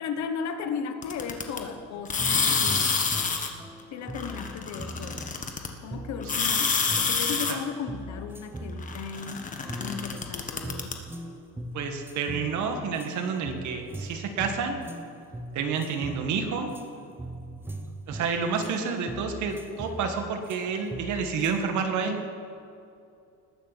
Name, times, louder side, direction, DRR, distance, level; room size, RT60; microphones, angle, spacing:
voice 1, 0.0-3.0 3.9-5.3 5.8-9.5 9.8-10.9, left 6 dB, 50° left, 8 dB, 1.1 m, -35 dB
sound 1, 1.0-1.6 2.1-3.5 4.2-5.7 6.2-7.5 8.8-10.9, left 5 dB, 20° left, 1.3 m, -27 dB
sound 2, 2.0-6.6 6.9-21.6, right 1 dB, 5° right, 0.7 m, -41 dB
voice 2, 11.7-14.8 15.5-16.7 18.1-22.2, right 5 dB, 55° right, 5 dB, 1.9 m, -29 dB
19.5 x 6.8 x 7.2 m, 2.5 s
cardioid pair, 140°, 36 cm